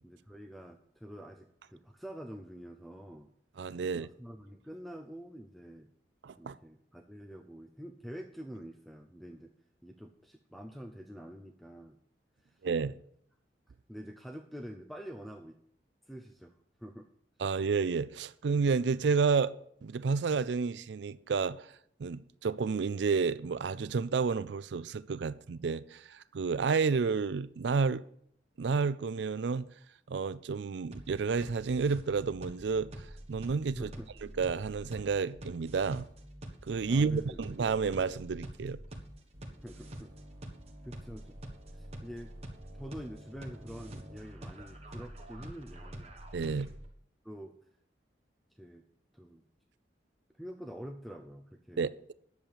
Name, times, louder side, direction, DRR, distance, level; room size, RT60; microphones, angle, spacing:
voice 1, 0.0-3.3 3.8-5.9 6.4-9.5 9.8-12.0 12.4-12.6 13.9-15.6 16.0-17.1 33.7-34.1 36.9-37.5 39.6-40.1 40.8-41.4 41.7-42.3 42.8-46.2 46.5-46.7 47.2-47.6 48.5-48.8 49.1-49.4 50.3-51.9, equal, ahead, 0.5 m, -46 dB
voice 2, 3.6-4.1 6.2-6.6 12.6-12.9 17.4-19.5 19.8-21.7 22.0-28.0 28.6-29.7 30.1-32.9 33.3-33.9 34.4-36.1 36.7-38.8 46.3-46.7 51.8-52.1, right 5 dB, 75° right, 0.4 m, -30 dB
sound 1, 30.9-46.9, right 1 dB, 35° right, 1.4 m, -46 dB
10.5 x 7.2 x 6.8 m
head